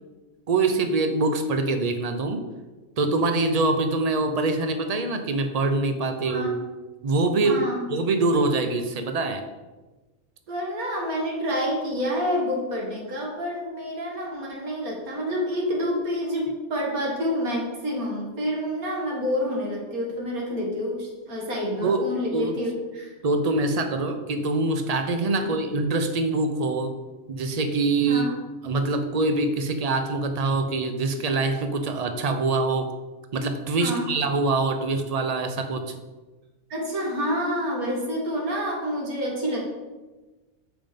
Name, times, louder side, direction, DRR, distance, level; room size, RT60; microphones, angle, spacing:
voice 1, 0.5-2.5 3.0-6.6 7.0-7.6 7.9-9.4 21.8-22.0 22.3-22.6 23.2-26.9 27.3-28.3 28.6-32.9 33.3-36.0, right 3 dB, 40° right, 7 dB, 0.6 m, -24 dB
voice 2, 6.2-6.6 7.4-7.8 10.5-23.1 25.4-25.6 28.0-28.4 33.8-34.1 36.7-39.6, equal, 85° right, -2 dB, 2.3 m, -28 dB
6.9 x 5.7 x 5.2 m, 1.2 s
omnidirectional pair, 1.5 m